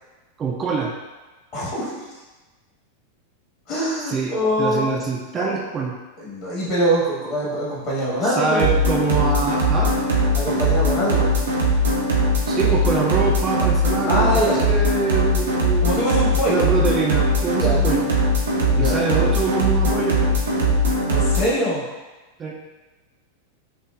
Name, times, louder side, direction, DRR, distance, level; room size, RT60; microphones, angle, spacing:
voice 1, 0.4-0.9 4.0-6.0 8.2-9.9 12.5-16.0 16.5-18.1 18.8-20.2 22.4-22.6, right 4 dB, 25° right, -1 dB, 0.4 m, -25 dB
voice 2, 1.5-2.0 3.7-5.0 5.4-5.5 6.2-8.8 10.3-11.3 14.1-14.6 15.8-16.7 17.5-17.8 18.7-18.9 21.1-21.8, equal, 40° left, -6 dB, 1.4 m, -23 dB
sound 1, 8.6-21.5, equal, 70° right, 0.6 m, -20 dB
5.8 x 2.3 x 2.3 m, 1.2 s
figure-of-eight pair, 90°, 0 cm